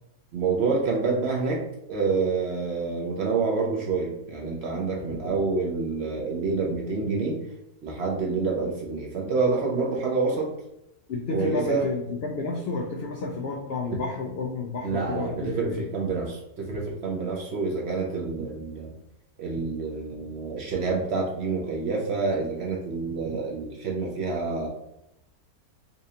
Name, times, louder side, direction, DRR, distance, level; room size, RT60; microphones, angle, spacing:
voice 1, 0.3-1.6 1.9-7.4 7.8-10.5 11.3-11.9 13.9-14.0 14.8-18.9 19.4-24.7, right 4 dB, 60° right, -1 dB, 0.7 m, -27 dB
voice 2, 11.1-15.9, left 3 dB, 85° left, 0 dB, 0.5 m, -31 dB
4.1 x 2.5 x 2.7 m, 0.83 s
omnidirectional pair, 1.6 m